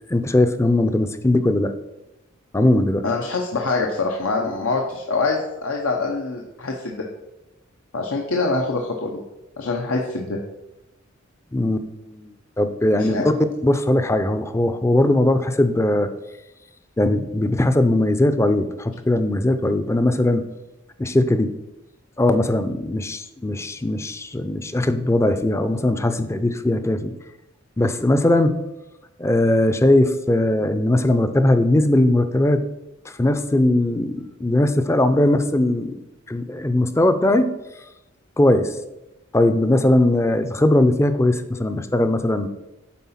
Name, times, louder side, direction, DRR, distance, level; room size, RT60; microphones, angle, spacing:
voice 1, 0.1-1.7 2.5-3.0 11.5-13.3 13.6-16.1 17.0-20.5 21.0-21.5 22.2-27.1 27.8-28.6 29.2-32.6 33.1-36.0 36.3-37.5 38.4-38.7 39.3-42.5, left 1 dB, 15° left, 10 dB, 0.4 m, -19 dB
voice 2, 3.0-7.0 7.9-9.2 9.6-10.4 13.0-13.4, left 3 dB, 85° left, 0 dB, 0.8 m, -24 dB
8.4 x 3.8 x 5.7 m, 0.96 s
head